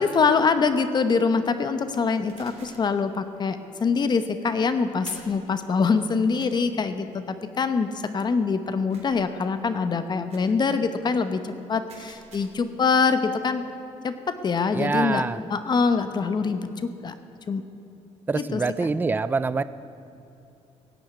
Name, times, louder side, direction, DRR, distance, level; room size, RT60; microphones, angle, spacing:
voice 1, 0.0-11.4 11.7-13.6 14.0-15.2 15.5-17.1 17.5-17.6 18.3-18.6, left 5 dB, 35° left, 10 dB, 0.9 m, -24 dB
sound 1, 2.3-2.9 5.0-5.4 6.4-6.5 8.9-9.3 10.3-10.6 11.9-12.7, right 5 dB, 65° right, 3.2 m, -49 dB
voice 2, 14.7-15.4 18.3-19.6, right 4 dB, 15° right, 15 dB, 0.4 m, -25 dB
17.0 x 7.1 x 9.4 m, 2.8 s
cardioid pair, 115°, 12 cm